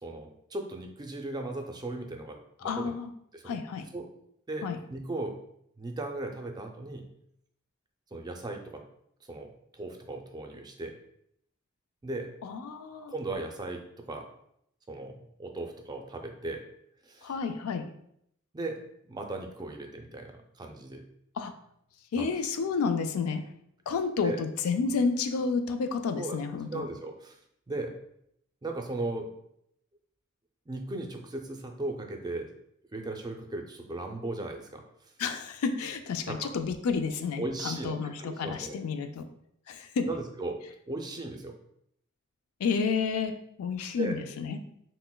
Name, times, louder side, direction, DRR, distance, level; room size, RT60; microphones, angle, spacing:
voice 1, 0.0-2.9 3.3-3.6 3.9-4.1 4.5-5.4 5.8-7.1 8.1-8.8 9.3-9.5 9.8-11.0 12.0-12.3 13.1-14.3 14.9-16.6 17.1-17.3 18.5-21.1 22.2-22.3 24.2-24.4 26.2-26.4 26.7-27.4 27.7-28.0 28.6-29.3 30.7-32.5 32.9-34.8 36.3-36.5 37.4-38.8 40.1-40.6 40.9-41.5 44.0-44.2, right 2 dB, 20° right, 4 dB, 0.4 m, -37 dB
voice 2, 2.6-3.1 3.4-3.9 4.6-4.8 12.4-13.1 17.2-17.9 21.4-21.5 22.1-23.4 23.9-26.8 35.2-39.3 39.7-40.1 42.6-44.6, left 5 dB, 90° left, 7 dB, 0.4 m, -30 dB
5.8 x 2.1 x 2.2 m, 0.73 s
head